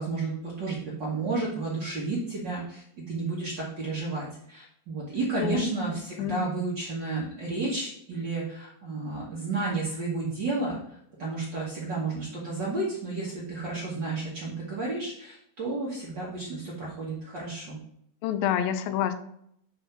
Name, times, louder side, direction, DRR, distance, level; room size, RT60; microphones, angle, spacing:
voice 1, 0.0-17.8, right 3 dB, 75° right, -5 dB, 1.0 m, -32 dB
voice 2, 5.4-5.7 6.2-6.4 18.2-19.1, left 10 dB, 85° left, 10 dB, 2.4 m, -27 dB
7.2 x 3.5 x 5.8 m, 0.71 s
omnidirectional pair, 4.2 m